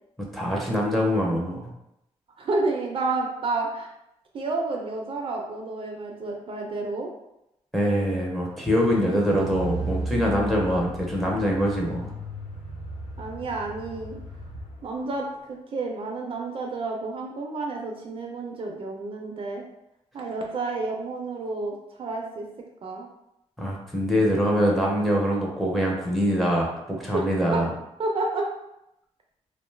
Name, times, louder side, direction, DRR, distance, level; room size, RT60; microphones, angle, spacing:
voice 1, 0.3-1.7 7.7-12.1 23.6-27.7, equal, ahead, -2 dB, 0.6 m, -24 dB
voice 2, 2.4-3.9 4.3-7.1 13.2-14.2 14.8-19.6 20.1-22.5 22.8-23.1 27.1-27.2 27.5-27.6 28.0-28.5, right 3 dB, 50° right, 0 dB, 0.4 m, -30 dB
Car, 8.7-14.9 15.1-15.2, right 1 dB, 85° left, 0.5 m, -35 dB
2.5 x 2.2 x 3.2 m, 0.85 s
cardioid pair, 120°, 12 cm